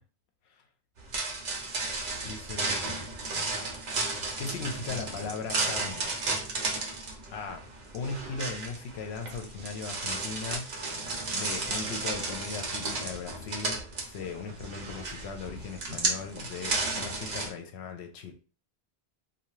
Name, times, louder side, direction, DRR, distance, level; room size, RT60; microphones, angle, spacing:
sound 1, 1.0-17.5, right 3 dB, 50° right, 0.7 m, -33 dB
voice 1, 2.2-3.1 4.4-6.1 7.3-10.7 11.3-18.3, left 5 dB, 80° left, 0.9 m, -38 dB
2.7 x 2.3 x 3.0 m
omnidirectional pair, 1.1 m